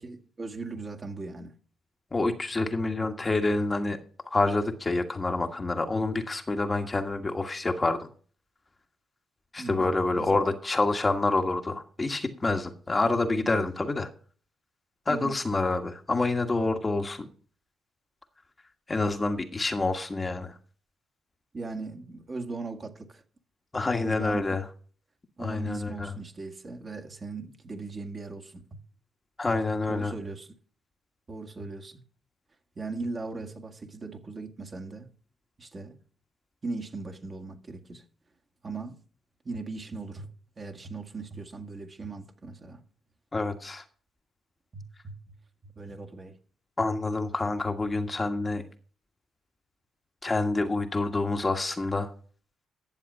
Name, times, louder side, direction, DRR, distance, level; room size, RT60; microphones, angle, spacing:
voice 1, 0.0-1.6 9.6-10.5 15.1-15.4 21.5-23.2 24.0-24.6 25.4-28.8 29.9-30.5 31.3-32.0 32.8-35.1 35.6-36.0 36.6-38.0 38.6-39.0 39.4-40.3 40.6-42.8 44.7-45.4 45.8-46.4, right 3 dB, 35° right, 1.9 m, -39 dB
voice 2, 2.1-4.0 4.3-8.0 9.5-14.1 15.1-17.3 18.9-20.5 23.7-24.6 25.4-26.1 29.4-30.1 43.3-43.8 46.8-48.6 50.2-52.1, left 2 dB, 25° left, 1.5 m, -27 dB
11.5 x 7.2 x 5.5 m
cardioid pair, 90°, 0 cm